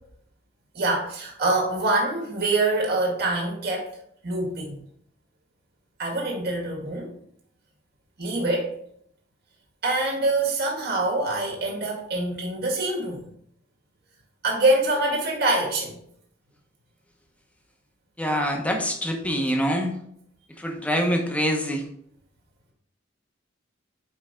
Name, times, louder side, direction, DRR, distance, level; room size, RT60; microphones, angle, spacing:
voice 1, 0.7-3.9 4.2-4.8 6.0-7.1 8.2-8.7 9.8-13.2 14.4-16.0, right 2 dB, 55° right, -1 dB, 2.0 m, -25 dB
voice 2, 18.2-20.0 20.5-21.8, equal, 5° left, 2 dB, 1.0 m, -25 dB
5.5 x 5.0 x 3.7 m, 0.68 s
head